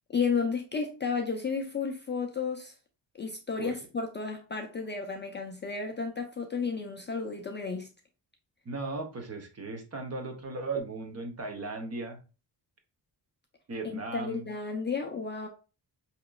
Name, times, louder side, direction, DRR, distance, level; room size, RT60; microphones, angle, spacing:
voice 1, 0.1-2.7 3.2-7.9 13.8-15.5, left 5 dB, 30° left, 0.3 m, -32 dB
voice 2, 8.6-12.2 13.7-14.5, right 3 dB, 35° right, 0.9 m, -36 dB
5.0 x 2.9 x 2.2 m
wide cardioid pair, 155°, 42 cm